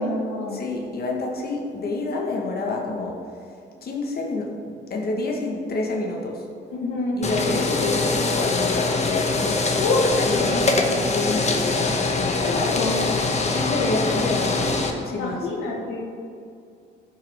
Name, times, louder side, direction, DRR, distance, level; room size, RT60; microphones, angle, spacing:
voice 1, 0.0-0.6 6.7-7.2 9.8-10.8 12.4-13.2 15.1-16.1, left 2 dB, 90° left, -2 dB, 1.8 m, -26 dB
voice 2, 0.5-3.2 3.8-6.5 7.2-12.7 13.5-15.5, left 3 dB, 50° left, 0 dB, 1.7 m, -28 dB
sound 1, 7.2-14.9, left 3 dB, 35° left, 1.2 m, -23 dB
14.5 x 6.1 x 3.7 m, 2.4 s
cardioid pair, 90°, 20 cm